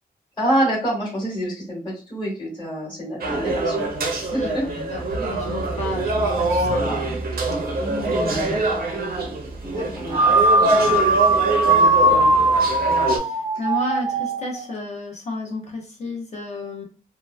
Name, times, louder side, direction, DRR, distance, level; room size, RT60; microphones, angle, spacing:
voice 1, 0.4-3.8 4.3-4.6 7.8-8.1 9.6-10.4 11.6-12.4, right 1 dB, 30° left, -7 dB, 1.3 m, -27 dB
sound 1, 3.2-13.2, right 2 dB, 85° right, 0.6 m, -24 dB
voice 2, 4.1-7.2 8.1-8.7 10.7-10.9 13.1-16.8, left 2 dB, 50° left, 0 dB, 0.8 m, -32 dB
sound 2, 10.1-14.7, right 2 dB, 25° right, 0.5 m, -19 dB
2.9 x 2.2 x 2.2 m, 0.36 s
wide cardioid pair, 145°, 15 cm